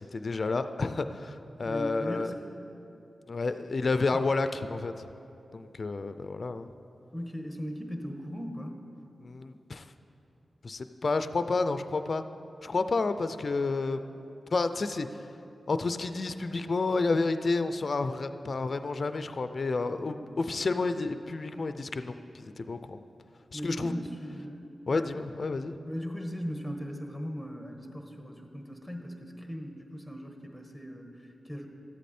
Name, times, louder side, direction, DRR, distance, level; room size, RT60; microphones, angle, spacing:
voice 1, 0.0-2.3 3.3-5.1 5.5-6.7 9.2-9.9 10.6-12.2 12.6-14.1 14.5-15.2 15.7-23.0 23.5-23.9 24.9-25.8, left 3 dB, 55° left, 10 dB, 0.4 m, -30 dB
voice 2, 1.6-2.3 4.1-4.3 7.1-8.7 19.9-20.6 23.5-24.6 24.9-25.1 25.9-31.7, equal, ahead, 3 dB, 1.2 m, -38 dB
12.5 x 8.2 x 4.3 m, 2.9 s
cardioid pair, 60°, 0 cm